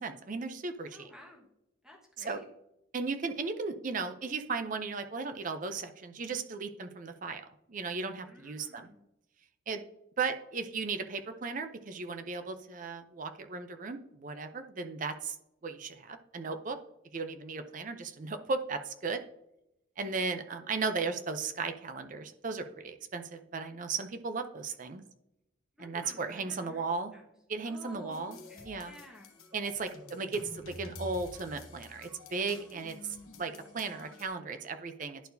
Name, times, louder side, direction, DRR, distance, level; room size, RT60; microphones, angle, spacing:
voice 1, 0.0-1.1 2.2-2.4 2.9-8.9 9.7-9.8 10.2-15.4 15.6-16.8 17.1-19.2 20.0-25.0 25.8-27.1 27.5-28.4 28.7-28.9 29.5-35.2, right 4 dB, 40° right, 8 dB, 0.5 m, -36 dB
voice 2, 0.9-1.5 1.8-2.4 8.2-9.1 20.0-20.2 25.8-26.9 27.1-27.3 27.6-28.2 28.5-29.3, left 1 dB, 5° right, -1 dB, 1.3 m, -52 dB
sound 1, 28.1-34.3, left 2 dB, 75° left, 1.0 m, -49 dB
11.0 x 4.5 x 2.6 m, 0.85 s
head